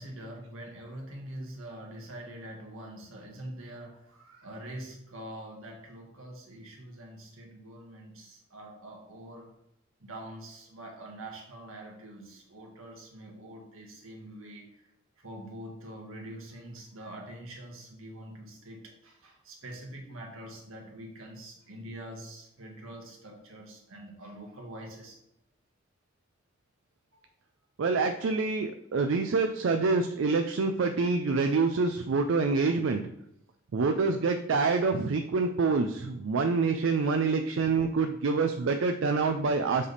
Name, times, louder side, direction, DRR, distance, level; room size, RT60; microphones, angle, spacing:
voice 1, 0.0-9.5 10.0-25.2 27.1-27.2 38.6-38.7, right 1 dB, 85° right, 0 dB, 1.6 m, -45 dB
voice 2, 27.8-33.0 33.7-39.9, right 4 dB, 70° right, 6 dB, 0.4 m, -26 dB
7.4 x 3.4 x 4.1 m, 0.79 s
head